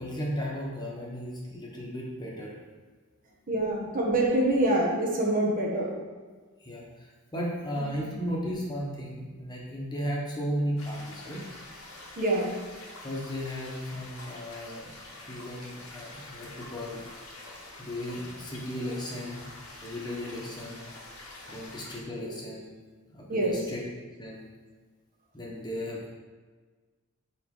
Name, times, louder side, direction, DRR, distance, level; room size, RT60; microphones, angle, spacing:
voice 1, 0.0-2.5 6.6-11.4 13.0-14.9 15.2-17.0 17.8-19.5 19.8-20.9 21.5-22.7 23.1-23.8 24.2-24.5 25.3-26.1, equal, 20° left, -3 dB, 1.1 m, -35 dB
voice 2, 3.5-5.9 7.8-7.9 12.2-12.5 22.2-22.3 23.3-23.6, right 1 dB, 40° right, -2 dB, 1.0 m, -25 dB
sound 1, 10.8-22.0, left 2 dB, 85° left, 1.6 m, -46 dB
5.1 x 4.4 x 5.4 m, 1.4 s
head